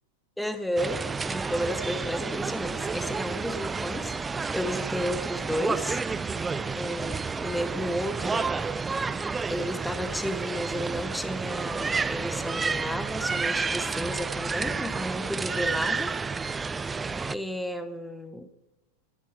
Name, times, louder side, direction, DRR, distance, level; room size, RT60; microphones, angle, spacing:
voice 1, 0.4-6.0 6.7-8.5 9.5-16.1 17.3-18.5, equal, ahead, 11 dB, 0.8 m, -32 dB
sound 1, 0.8-17.3, right 4 dB, 15° right, 0.3 m, -30 dB
11.0 x 10.0 x 4.6 m, 0.96 s
figure-of-eight pair, 90°, 0 cm